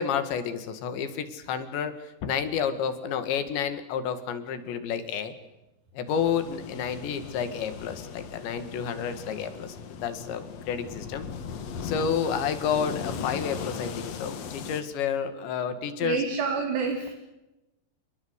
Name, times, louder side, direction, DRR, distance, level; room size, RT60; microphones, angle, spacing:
voice 1, 0.0-5.3 5.9-11.2 11.8-16.2, left 7 dB, 80° left, 10 dB, 4.3 m, -30 dB
sound 1, 6.1-14.8, left 6 dB, 55° left, 1.9 m, -38 dB
voice 2, 16.0-17.1, right 5 dB, 75° right, 3 dB, 5.0 m, -28 dB
28.5 x 21.0 x 8.2 m, 0.95 s
omnidirectional pair, 5.0 m